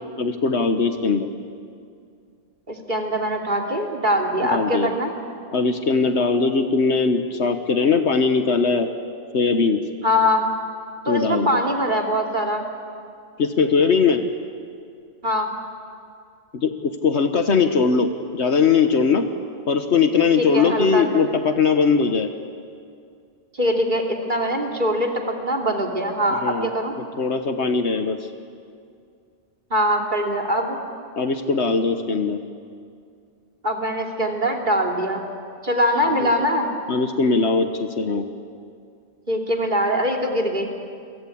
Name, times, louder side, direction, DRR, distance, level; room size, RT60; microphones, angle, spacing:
voice 1, 0.2-1.3 4.5-4.9 5.5-8.9 9.3-9.8 11.1-11.6 13.4-14.2 16.6-19.3 19.7-22.3 26.3-26.7 27.2-28.2 31.2-32.4 36.1-36.3 36.9-38.3, left 5 dB, 75° left, 7 dB, 1.5 m, -20 dB
voice 2, 2.7-5.1 10.0-10.5 11.0-12.7 15.2-15.5 20.4-21.2 23.5-26.9 29.7-30.8 33.6-35.2 35.6-36.7 39.3-40.7, equal, 45° right, 1 dB, 3.2 m, -22 dB
29.0 x 23.5 x 8.6 m, 2.3 s
omnidirectional pair, 1.2 m